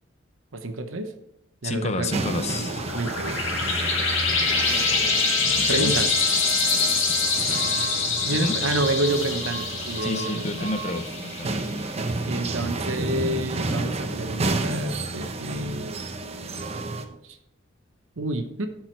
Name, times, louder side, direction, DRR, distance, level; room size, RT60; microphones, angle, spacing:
voice 1, 0.5-1.1 1.6-2.2 2.9-3.4 5.7-6.1 8.2-10.7 12.3-15.9 17.2-17.4 18.2-18.7, right 2 dB, 75° right, 7 dB, 0.9 m, -28 dB
voice 2, 1.6-2.8 5.7-5.9 7.1-7.2 8.4-8.5 10.0-11.6, left 2 dB, 35° left, 9 dB, 0.7 m, -29 dB
sound 1, 2.1-17.1, right 2 dB, 30° right, 0.7 m, -31 dB
sound 2, 2.6-11.8, left 4 dB, 70° left, 1.9 m, -25 dB
11.5 x 4.8 x 4.5 m, 0.80 s
head